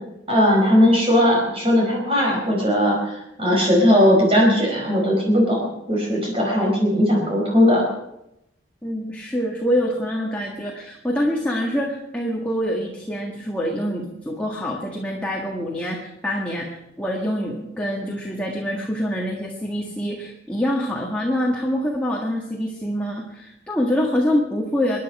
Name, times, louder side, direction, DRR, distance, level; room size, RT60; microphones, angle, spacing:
voice 1, 0.3-7.8, equal, 30° right, -2 dB, 4.8 m, -18 dB
voice 2, 8.8-25.0, equal, 5° left, -2 dB, 1.8 m, -25 dB
25.5 x 10.5 x 4.9 m, 0.85 s
head